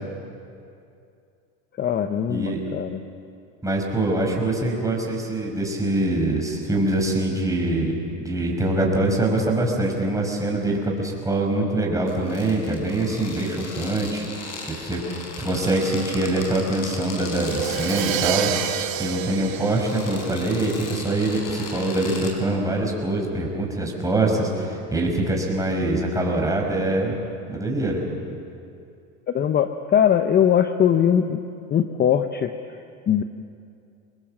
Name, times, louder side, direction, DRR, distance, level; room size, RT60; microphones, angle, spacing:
voice 1, 1.8-3.0 29.3-31.4 31.7-32.5 33.1-33.2, left 9 dB, 25° left, 8 dB, 0.8 m, -20 dB
voice 2, 3.6-14.2 14.7-15.0 15.4-18.5 19.0-27.1 27.5-28.0, right 1 dB, 10° right, 0 dB, 5.2 m, -24 dB
sound 1, 12.1-22.3, left 3 dB, 40° left, 4.6 m, -38 dB
Wind instrument woodwind instrument, 15.5-21.2, right 1 dB, 45° right, 3.0 m, -37 dB
Crash cymbal, 17.3-21.1, right 11 dB, 85° right, 1.6 m, -29 dB
25.0 x 20.5 x 7.5 m, 2.5 s
supercardioid pair, 120°, 38 cm